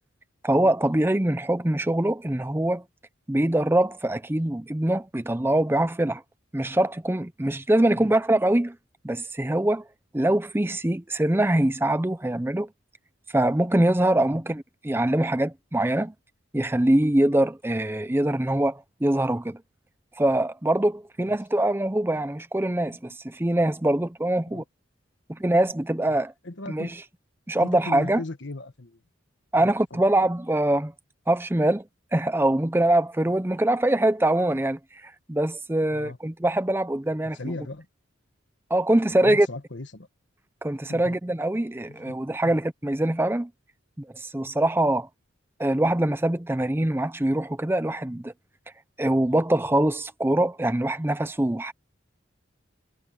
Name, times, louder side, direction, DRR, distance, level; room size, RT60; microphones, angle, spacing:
voice 1, 0.4-2.8 3.3-6.2 6.5-8.8 9.0-9.8 10.1-12.7 13.3-16.1 16.5-19.6 20.2-24.6 25.3-26.3 26.7-26.9 27.5-28.2 29.5-30.9 31.3-31.8 32.1-37.4 38.7-39.5 40.6-43.5 44.0-45.1 45.6-48.3 49.0-51.7, right 1 dB, 10° right, 0.5 m, -23 dB
voice 2, 26.4-27.0 27.6-29.0 29.5-30.0 35.9-36.2 37.3-37.9 39.2-40.1 40.9-41.2 41.9-42.2 42.4-42.6, left 2 dB, 60° left, 1.5 m, -37 dB
head